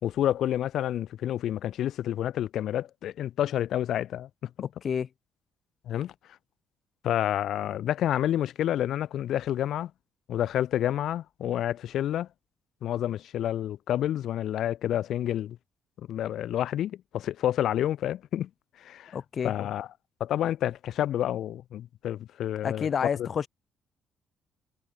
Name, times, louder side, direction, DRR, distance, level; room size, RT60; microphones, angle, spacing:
voice 1, 0.0-4.7 5.9-6.1 7.0-9.9 10.3-12.3 12.8-15.6 16.1-18.5 18.8-19.2 19.4-19.9 20.2-22.9 23.2-23.3, left 11 dB, 70° left, 6.1 m, -29 dB
voice 2, 4.6-5.1 19.1-19.5 22.6-23.5, left 7 dB, 55° left, 3.1 m, -29 dB
hypercardioid pair, 50°, 0 cm